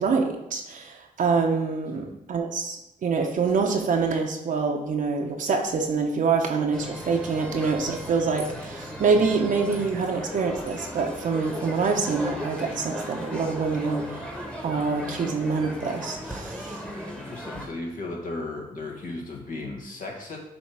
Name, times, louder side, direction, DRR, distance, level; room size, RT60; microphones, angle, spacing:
voice 1, 0.0-14.4 14.6-16.8, right 4 dB, 65° right, 2 dB, 0.8 m, -26 dB
sound 1, 6.7-17.7, equal, 5° left, 1.2 m, -36 dB
voice 2, 17.1-20.4, left 2 dB, 65° left, 0 dB, 1.5 m, -35 dB
7.1 x 3.1 x 4.8 m, 0.90 s
cardioid pair, 85°, 15 cm